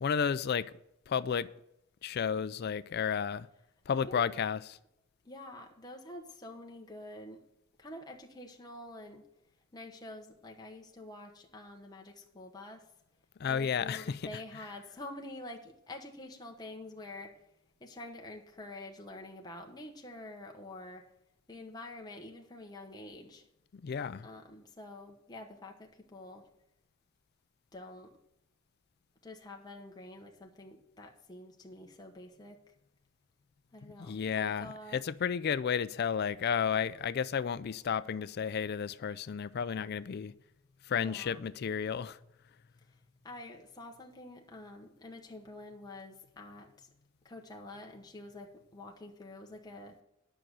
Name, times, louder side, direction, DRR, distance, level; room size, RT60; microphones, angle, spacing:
voice 1, 0.0-0.7 1.1-1.5 2.0-3.5 3.9-4.6 13.4-14.2 23.8-24.3 34.0-40.3 40.9-42.2, left 7 dB, 50° left, 0.4 m, -32 dB
voice 2, 3.9-4.3 5.2-7.4 7.8-9.2 9.7-12.9 13.5-17.4 17.8-21.0 21.5-23.5 24.2-26.5 27.7-28.2 29.2-32.6 33.7-35.0 40.9-41.5 43.2-46.9 47.2-50.0, left 2 dB, 20° left, 1.1 m, -47 dB
10.0 x 6.1 x 6.7 m
head